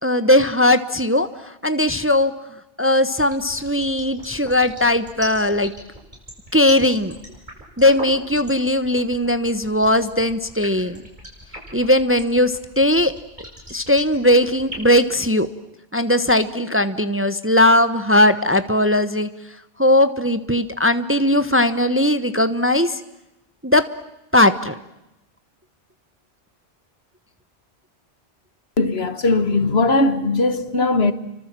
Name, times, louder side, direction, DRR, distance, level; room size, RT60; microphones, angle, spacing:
voice 1, 0.0-2.3 2.8-5.7 6.5-7.2 7.8-11.0 11.7-13.1 13.7-15.5 15.9-19.3 19.8-23.0 23.6-23.8 24.3-24.7, left 1 dB, 10° right, 0.9 m, -18 dB
sound 1, 3.2-15.0, right 1 dB, 40° right, 7.1 m, -38 dB
voice 2, 28.8-31.1, left 2 dB, 60° left, 1.7 m, -19 dB
30.0 x 25.0 x 7.5 m
omnidirectional pair, 1.2 m